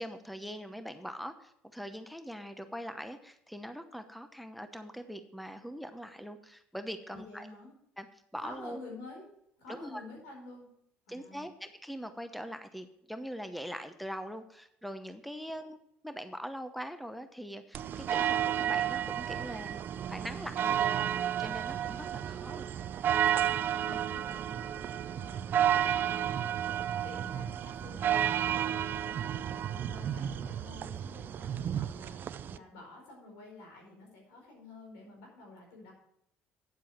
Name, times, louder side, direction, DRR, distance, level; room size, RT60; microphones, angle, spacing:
voice 1, 0.0-7.5 8.0-8.1 8.3-8.8 9.8-10.0 11.1-15.8 16.0-21.1 21.4-22.7, equal, ahead, 9 dB, 0.9 m, -42 dB
voice 2, 7.1-7.7 8.4-9.2 9.6-10.7 11.1-11.5 23.7-26.4 27.0-35.9, left 2 dB, 85° left, 0 dB, 4.7 m, -50 dB
sound 1, 17.7-32.6, right 10 dB, 50° right, 0.5 m, -32 dB
9.1 x 7.5 x 5.9 m, 0.73 s
supercardioid pair, 85°, 4 cm